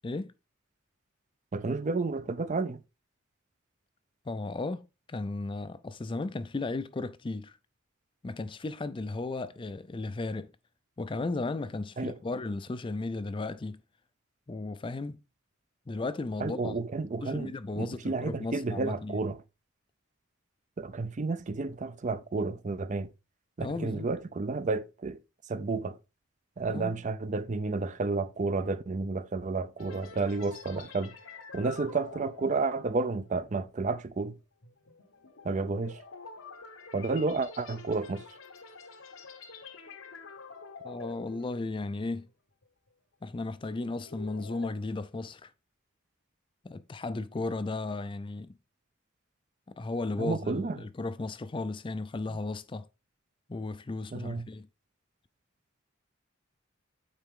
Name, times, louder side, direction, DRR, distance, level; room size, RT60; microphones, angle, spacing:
voice 1, 1.5-2.8 12.0-12.2 16.4-19.4 20.8-23.1 23.6-25.2 25.5-26.0 26.6-31.1 31.5-34.3 35.4-36.0 36.9-38.2 50.2-50.8 54.1-54.5, right 3 dB, 35° right, 0.5 m, -31 dB
voice 2, 4.3-7.6 8.2-10.5 11.0-13.8 14.5-15.2 15.9-16.7 17.2-19.2 23.6-24.1 26.7-27.0 40.8-42.3 43.2-45.5 46.6-48.6 49.8-52.9 53.5-54.7, left 3 dB, 25° left, 0.4 m, -35 dB
sound 1, 29.8-42.3 42.6-42.9 43.4-44.7, left 4 dB, 85° left, 1.1 m, -48 dB
8.6 x 4.1 x 3.7 m
head